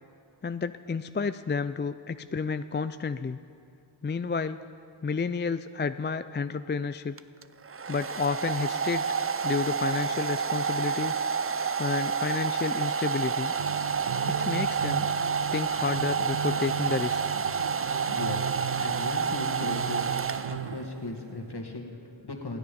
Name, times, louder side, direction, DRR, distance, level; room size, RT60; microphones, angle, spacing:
voice 1, 0.4-3.4 4.0-4.6 5.0-7.1 7.9-9.1 9.4-11.2 11.8-13.5 14.5-15.1 15.5-17.4, left 5 dB, 25° left, 12 dB, 0.4 m, -30 dB
Domestic sounds home sounds, 7.2-20.9, right 6 dB, 30° right, 0.5 m, -29 dB
sound 1, 13.6-21.8, right 9 dB, 85° right, 0.5 m, -37 dB
voice 2, 17.8-18.5 18.8-20.1 20.5-22.6, left 3 dB, 55° left, 3 dB, 2.1 m, -37 dB
27.5 x 9.8 x 5.3 m, 2.4 s
wide cardioid pair, 65°, 46 cm